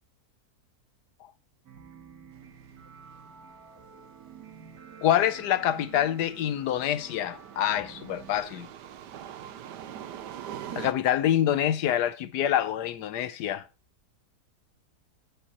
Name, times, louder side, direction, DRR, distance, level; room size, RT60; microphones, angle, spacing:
sound 1, 1.6-8.3, right 6 dB, 65° right, 2.1 m, -49 dB
sound 2, 2.4-10.9, right 10 dB, 85° right, 1.4 m, -44 dB
voice 1, 5.0-8.7 10.8-13.6, left 11 dB, 80° left, 1.2 m, -26 dB
15.5 x 5.7 x 2.9 m
omnidirectional pair, 1.8 m